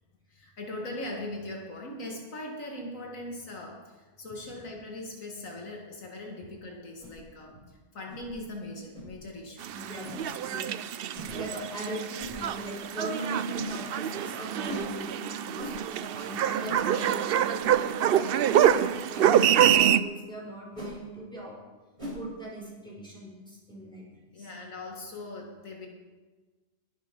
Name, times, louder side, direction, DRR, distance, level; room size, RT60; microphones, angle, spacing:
voice 1, 0.3-9.7 15.0-15.1 24.3-25.9, left 1 dB, 75° left, 0 dB, 2.2 m, -40 dB
sound 1, 7.0-7.2 8.1-8.3 8.9-9.1 10.0-10.2 11.1-11.3 12.2-12.3 13.5-13.7 14.6-14.9 15.6-15.8 16.6-16.8 17.6-17.8 18.5-18.7 19.6-19.8 20.7-20.9 22.0-22.2, right 1 dB, 25° right, 4.2 m, -37 dB
sound 2, 9.6-20.0, right 10 dB, 65° right, 0.6 m, -26 dB
voice 2, 9.7-17.6 18.1-21.6 22.1-24.5, right 1 dB, 5° left, -5 dB, 5.6 m, -39 dB
21.0 x 8.0 x 5.3 m, 1.3 s
omnidirectional pair, 1.4 m